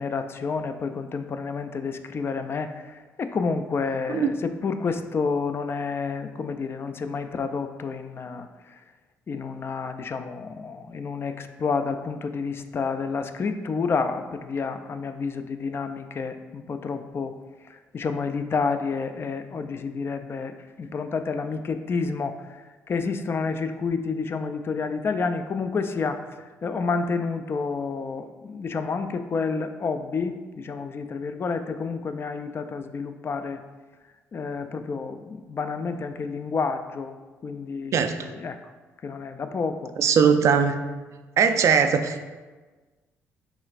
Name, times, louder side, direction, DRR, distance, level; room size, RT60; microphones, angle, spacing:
voice 1, 0.0-8.5 9.3-17.4 17.7-26.2 26.6-33.6 34.3-37.2 37.4-38.6 39.0-39.9, left 4 dB, 40° left, 8 dB, 0.3 m, -29 dB
voice 2, 37.9-38.3 40.0-40.8 41.4-42.2, right 6 dB, 55° right, 7 dB, 0.3 m, -20 dB
4.9 x 3.2 x 2.4 m, 1.3 s
supercardioid pair, 60°, 6 cm